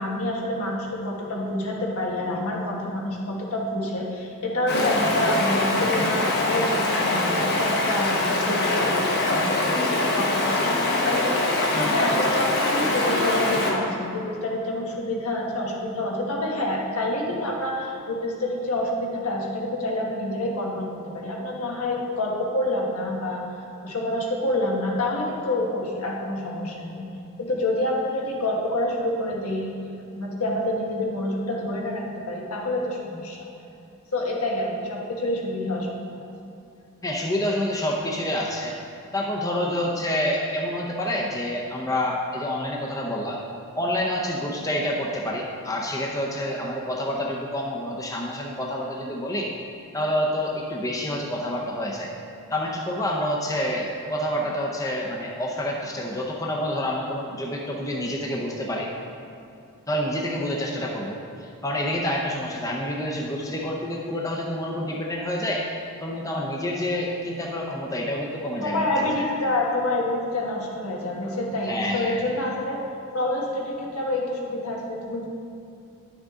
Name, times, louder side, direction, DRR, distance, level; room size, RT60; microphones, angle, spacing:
voice 1, 0.0-10.6 11.0-11.3 11.7-23.4 23.8-27.1 27.4-29.7 30.1-33.5 34.1-36.2 68.6-72.8 73.1-75.3, left 1 dB, 80° left, -2 dB, 1.4 m, -27 dB
Stream, 4.7-13.7, left 2 dB, 45° left, 1.1 m, -23 dB
voice 2, 37.0-38.8 39.1-43.4 43.8-49.5 49.9-52.1 52.5-58.9 59.9-65.6 66.0-69.2 71.6-72.2, left 1 dB, 15° left, -2 dB, 0.6 m, -28 dB
10.0 x 6.4 x 3.7 m, 2.6 s
head